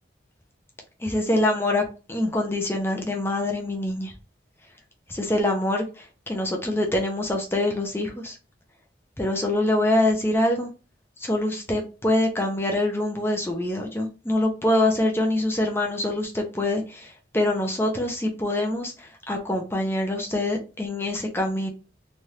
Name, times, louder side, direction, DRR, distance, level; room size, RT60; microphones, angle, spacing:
voice 1, 1.0-4.1 5.1-8.4 9.2-10.7 11.2-21.7, left 1 dB, 15° left, 1 dB, 0.6 m, -25 dB
3.2 x 2.5 x 2.8 m, 0.33 s
head